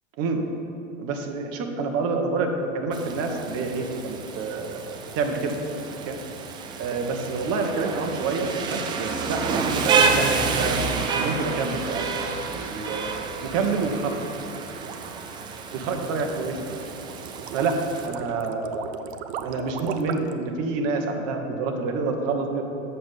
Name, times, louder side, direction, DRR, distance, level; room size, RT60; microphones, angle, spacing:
voice 1, 1.0-4.9 5.1-5.5 6.1-6.2 6.8-12.0 12.4-13.1 13.4-14.1 15.7-16.8 17.5-19.0 19.4-22.6, right 4 dB, 40° right, 4 dB, 1.2 m, -28 dB
Rain, 2.9-18.1, right 5 dB, 15° right, 0.3 m, -29 dB
sound 1, 14.5-20.4, right 8 dB, 55° right, 0.6 m, -37 dB
7.5 x 6.9 x 5.6 m, 3.0 s
figure-of-eight pair, 95°, 39 cm